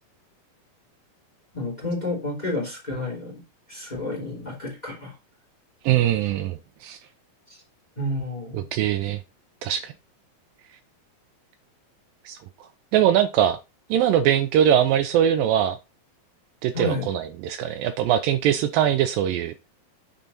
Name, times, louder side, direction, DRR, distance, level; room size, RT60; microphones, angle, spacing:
voice 1, 1.5-3.4 3.7-5.1 7.5-7.6 8.0-8.7 16.7-17.1, left 1 dB, 10° left, -1 dB, 2.7 m, -30 dB
voice 2, 5.8-7.0 8.5-9.2 9.6-9.9 12.3-13.6 13.9-15.8 16.6-19.5, right 10 dB, 80° right, 10 dB, 2.2 m, -22 dB
9.0 x 4.4 x 4.0 m, 0.26 s
omnidirectional pair, 4.3 m